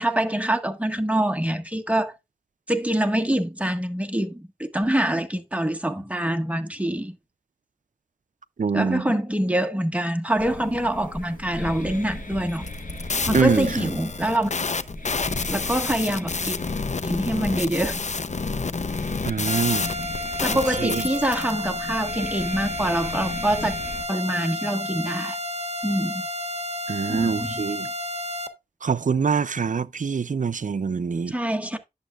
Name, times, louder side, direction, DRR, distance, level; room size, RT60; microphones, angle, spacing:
voice 1, 0.0-2.1 2.7-7.1 8.7-12.7 13.3-14.5 15.5-16.6 17.0-18.0 20.4-23.8 24.1-25.4 25.8-26.2 27.1-27.6 31.3-31.8, right 1 dB, 10° right, 1.5 m, -25 dB
voice 2, 8.6-9.1 13.3-13.9 19.2-19.9 20.8-21.0 26.9-27.9 28.8-31.4, right 5 dB, 65° right, 0.5 m, -24 dB
sound 1, 10.4-24.0, left 2 dB, 70° left, 4.4 m, -37 dB
sound 2, 12.6-21.5, left 4 dB, 55° left, 0.6 m, -29 dB
sound 3, 19.5-28.5, left 1 dB, 45° right, 1.2 m, -31 dB
11.0 x 7.1 x 2.4 m
wide cardioid pair, 55°, 15 cm